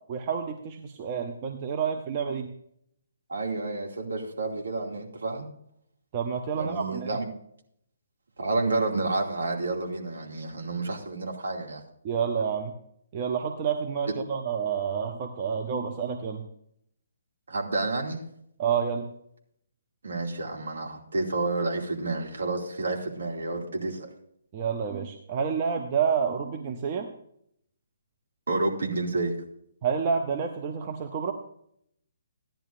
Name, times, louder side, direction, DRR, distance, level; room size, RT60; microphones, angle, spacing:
voice 1, 0.1-2.5 6.1-7.1 12.0-12.7 13.1-16.4 18.6-19.1 24.5-27.1 29.8-31.3, right 6 dB, 30° right, 3 dB, 0.8 m, -29 dB
voice 2, 3.3-5.5 6.6-7.3 8.4-11.8 17.5-18.2 20.0-24.1 28.5-29.3, right 2 dB, 65° right, 0 dB, 2.4 m, -30 dB
15.0 x 10.5 x 2.6 m, 0.70 s
figure-of-eight pair, 135°, 0 cm